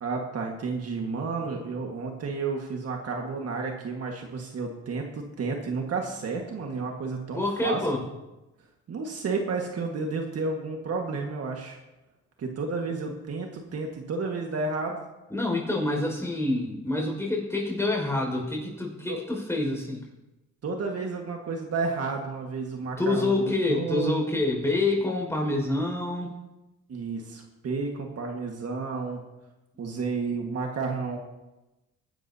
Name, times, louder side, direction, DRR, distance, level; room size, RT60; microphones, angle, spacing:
voice 1, 0.0-8.1 8.9-11.8 12.4-15.0 19.1-19.2 20.6-24.1 26.9-29.2 29.8-31.2, right 4 dB, 55° right, 1 dB, 1.8 m, -31 dB
voice 2, 7.3-8.0 15.3-20.0 23.0-26.3, left 2 dB, 10° left, 0 dB, 5.4 m, -27 dB
19.0 x 12.0 x 2.9 m, 1.0 s
cardioid pair, 90°, 30 cm